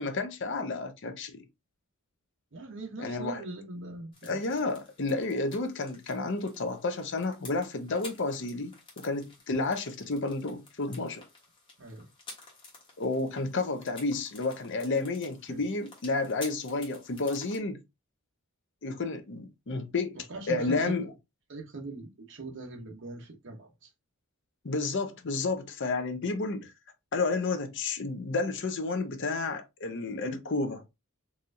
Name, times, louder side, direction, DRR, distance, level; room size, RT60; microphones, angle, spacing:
voice 1, 0.0-1.4 3.0-3.4 4.2-8.8 9.0-11.2 13.0-17.8 18.8-20.2 20.5-21.1 24.6-26.7 27.1-30.8, left 3 dB, 55° left, 0.7 m, -31 dB
voice 2, 2.5-4.4 11.8-12.1 15.5-15.6 20.3-21.1 21.5-23.9, right 2 dB, 60° right, 0.9 m, -41 dB
sound 1, 4.1-17.6, left 3 dB, 25° left, 1.1 m, -51 dB
4.2 x 2.5 x 2.5 m
head